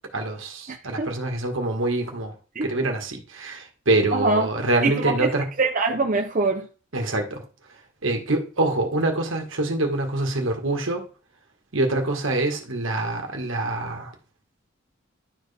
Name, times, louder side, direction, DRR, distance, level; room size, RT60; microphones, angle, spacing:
voice 1, 0.1-2.3 2.6-5.5 6.9-7.4 8.0-11.1 11.7-14.1, right 2 dB, 70° right, 1.7 m, -25 dB
voice 2, 4.1-4.5 4.8-5.3 5.6-6.7, right 3 dB, 40° right, 0.6 m, -23 dB
11.0 x 4.6 x 3.4 m
head